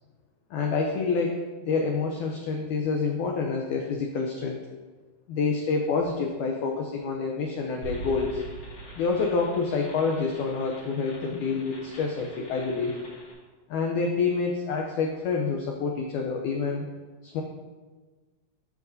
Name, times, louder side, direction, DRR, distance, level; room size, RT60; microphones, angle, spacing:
voice 1, 0.5-4.6 5.3-8.4 9.0-12.9 13.7-16.9 17.3-17.4, left 4 dB, 80° left, 1 dB, 1.9 m, -27 dB
sound 1, 7.8-13.3, right 2 dB, 45° left, 3.2 m, -42 dB
14.5 x 5.1 x 2.7 m, 1.3 s
omnidirectional pair, 4.2 m